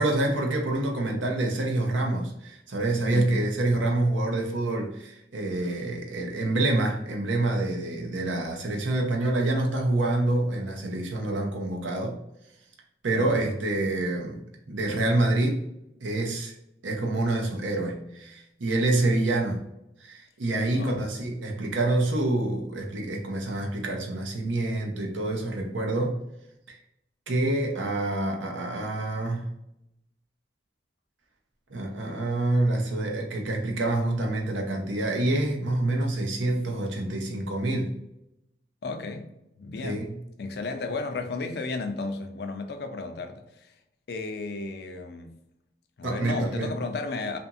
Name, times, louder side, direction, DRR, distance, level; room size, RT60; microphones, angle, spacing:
voice 1, 0.0-12.2 13.0-14.4 14.7-15.7 16.0-16.5 16.8-19.6 20.0-26.2 26.7-26.8 27.3-29.5 31.7-37.9 39.8-40.1 46.0-46.7, right 2 dB, 90° right, 0.7 m, -27 dB
voice 2, 3.1-3.5 13.2-13.5 20.7-21.1 38.8-40.1 40.4-43.7 44.1-45.4 46.0-47.4, left 3 dB, 55° left, 0.4 m, -34 dB
2.8 x 2.5 x 2.4 m
head